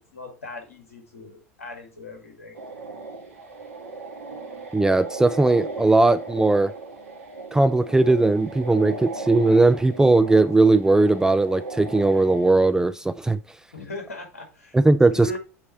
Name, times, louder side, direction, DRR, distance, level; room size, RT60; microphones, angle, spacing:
voice 1, 0.1-2.6 13.7-14.8 15.1-15.4, left 2 dB, 75° left, 2.1 m, -38 dB
sound 1, 2.5-12.5, right 3 dB, 75° right, 1.7 m, -37 dB
voice 2, 4.7-6.7 7.5-13.4 14.7-15.4, right 2 dB, 5° right, 0.3 m, -18 dB
8.2 x 3.2 x 4.1 m
figure-of-eight pair, 80°, 8 cm